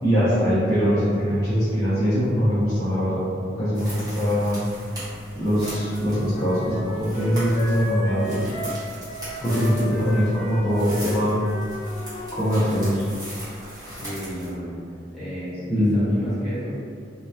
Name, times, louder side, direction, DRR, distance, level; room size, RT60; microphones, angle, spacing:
voice 1, 0.0-3.3 3.6-4.6 5.4-8.5 9.4-11.4 12.3-13.0 15.7-16.1, equal, 20° left, -15 dB, 0.6 m, -22 dB
sound 1, 3.7-14.5, equal, 20° right, 1.0 m, -39 dB
Wind instrument woodwind instrument, 5.4-12.7, left 1 dB, 80° left, 1.2 m, -34 dB
voice 2, 14.0-14.8 15.1-16.7, equal, ahead, -15 dB, 1.2 m, -33 dB
2.7 x 2.2 x 2.2 m, 2.2 s
head